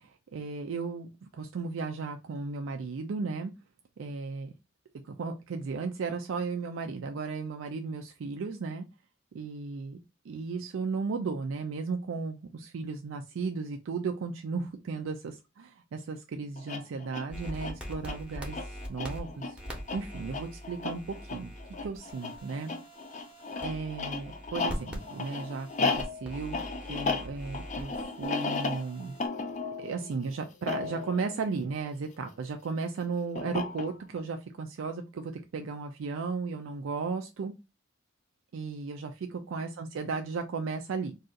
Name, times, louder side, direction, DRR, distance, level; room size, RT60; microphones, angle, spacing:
voice 1, 0.0-3.5 4.0-4.5 5.1-8.9 9.3-10.0 10.3-19.6 19.9-21.5 21.8-22.7 23.6-29.1 29.8-37.5 38.5-41.2, right 4 dB, 75° right, 5 dB, 0.4 m, -35 dB
sound 1, 16.6-32.3 33.4-34.2, left 4 dB, 35° left, 0.4 m, -35 dB
sound 2, 17.3-29.3, equal, 5° right, 0.7 m, -43 dB
2.6 x 2.4 x 3.7 m, 0.27 s
head